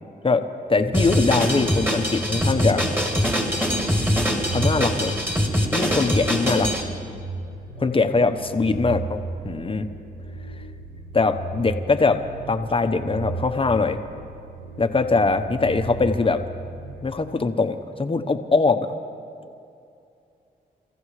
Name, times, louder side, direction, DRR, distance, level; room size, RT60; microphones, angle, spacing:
voice 1, 0.2-2.9 4.5-5.2 5.7-6.7 7.8-9.9 11.1-12.2 12.5-14.0 14.8-16.4 17.0-18.9, left 3 dB, 30° left, 8 dB, 1.2 m, -22 dB
sound 1, 0.7-17.6, right 2 dB, 55° right, 1.9 m, -36 dB
Drum kit, 0.9-6.8, equal, 10° right, 3.1 m, -23 dB
28.5 x 15.0 x 3.3 m, 2.6 s
cardioid pair, 65°, 17 cm